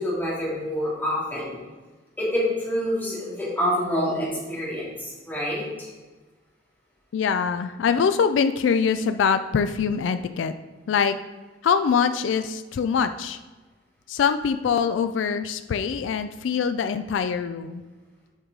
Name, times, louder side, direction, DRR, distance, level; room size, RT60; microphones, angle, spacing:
voice 1, 0.0-1.6 2.2-5.9, equal, 10° left, -6 dB, 2.1 m, -27 dB
voice 2, 7.1-10.5 10.9-11.2 11.6-13.4 14.1-17.8, left 6 dB, 85° left, 10 dB, 0.3 m, -23 dB
8.0 x 4.7 x 3.8 m, 1.3 s
head